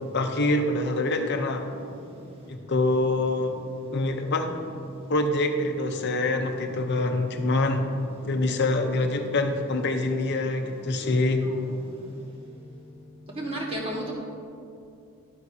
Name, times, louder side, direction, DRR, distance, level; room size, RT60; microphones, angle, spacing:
voice 1, 0.0-1.7 2.5-3.5 3.9-4.5 5.1-7.9 8.2-11.5, left 2 dB, 50° left, 4 dB, 0.7 m, -25 dB
voice 2, 13.4-14.1, right 1 dB, 25° right, -3 dB, 1.5 m, -31 dB
11.5 x 9.4 x 2.8 m, 2.5 s
head